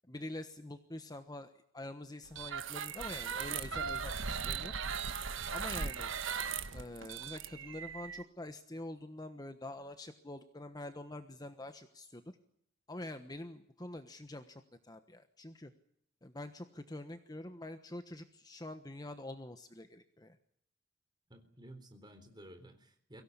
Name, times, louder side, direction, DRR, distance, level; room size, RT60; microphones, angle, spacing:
voice 1, 0.1-4.7 5.5-6.1 6.7-12.2 12.9-15.7 16.2-20.4, left 1 dB, 20° left, 8 dB, 1.2 m, -46 dB
sound 1, 2.3-8.2, right 6 dB, 65° right, 1.4 m, -38 dB
voice 2, 21.3-23.2, right 1 dB, 20° right, 7 dB, 3.8 m, -54 dB
23.5 x 17.0 x 9.8 m, 0.71 s
head